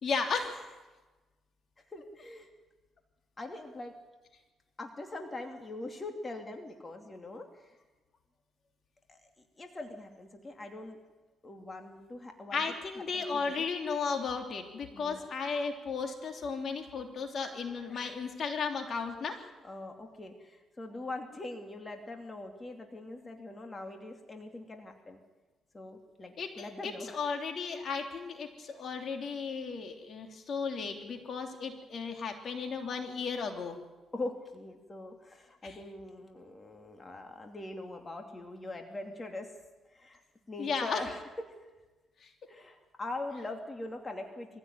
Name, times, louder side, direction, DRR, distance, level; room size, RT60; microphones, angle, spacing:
voice 1, 0.0-0.7 12.5-19.4 26.4-33.8 35.6-35.8 40.6-41.0 42.2-42.3, left 5 dB, 55° left, 4 dB, 3.2 m, -35 dB
voice 2, 1.9-2.5 3.4-3.9 4.8-7.7 9.1-9.2 9.6-11.0 11.4-12.6 13.1-13.7 14.9-15.3 17.9-18.2 19.6-25.2 25.7-27.1 34.1-39.5 39.9-40.2 40.5-41.2 42.5-44.6, left 2 dB, 25° left, 3 dB, 2.8 m, -42 dB
23.0 x 16.0 x 9.4 m, 1.2 s
cardioid pair, 90°, 0 cm